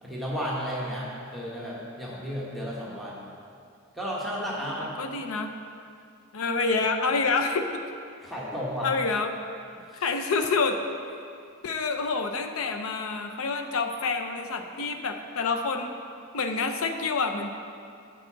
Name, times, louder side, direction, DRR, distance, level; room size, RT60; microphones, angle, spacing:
voice 1, 0.0-3.3 3.9-4.9 8.2-8.9 9.9-10.0, equal, ahead, -7 dB, 1.1 m, -33 dB
voice 2, 4.6-5.5 6.3-7.8 8.8-9.4 10.0-10.8 11.6-15.9 16.3-17.5, left 4 dB, 80° left, 5 dB, 0.6 m, -27 dB
7.8 x 4.8 x 7.3 m, 2.4 s
head